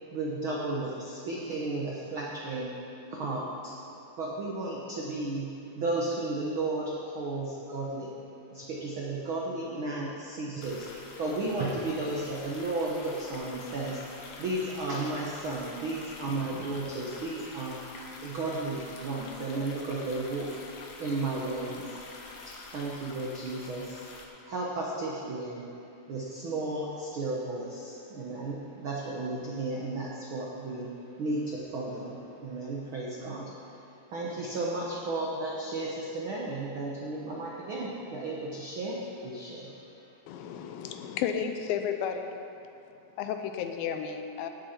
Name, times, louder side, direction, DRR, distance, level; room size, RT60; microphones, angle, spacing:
voice 1, 0.1-2.7 3.1-3.7 4.2-8.1 8.5-20.6 21.0-22.0 22.4-24.1 24.4-25.7 26.1-39.7, right 2 dB, 85° right, -4 dB, 1.1 m, -34 dB
sound 1, 10.6-24.2, left 3 dB, 65° left, 1.5 m, -46 dB
voice 2, 39.8-40.9 42.7-43.2, left 3 dB, 50° left, -7 dB, 3.9 m, -62 dB
voice 3, 40.3-42.4 43.2-44.5, left 8 dB, 85° left, 6 dB, 2.4 m, -33 dB
17.5 x 8.0 x 4.4 m, 2.7 s
omnidirectional pair, 4.1 m